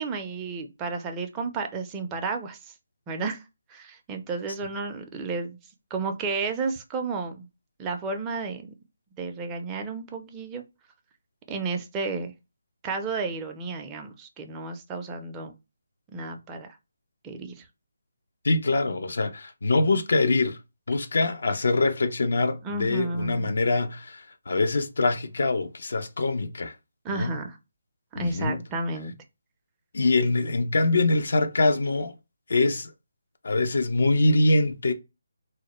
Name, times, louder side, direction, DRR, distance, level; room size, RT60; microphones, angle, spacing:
voice 1, 0.0-2.7 3.1-3.4 3.7-5.6 5.9-7.5 7.8-8.7 9.2-10.6 11.5-12.3 12.8-15.5 16.1-16.7 17.2-17.7 22.6-23.5 27.0-27.6 28.1-29.1, right 4 dB, 15° right, 0.4 m, -32 dB
voice 2, 18.4-20.6 20.9-26.7 27.1-27.4 28.2-28.6 29.9-32.1 32.5-32.9 33.4-34.9, left 2 dB, 65° left, 0.4 m, -24 dB
2.1 x 2.0 x 2.9 m
figure-of-eight pair, 155°, 0 cm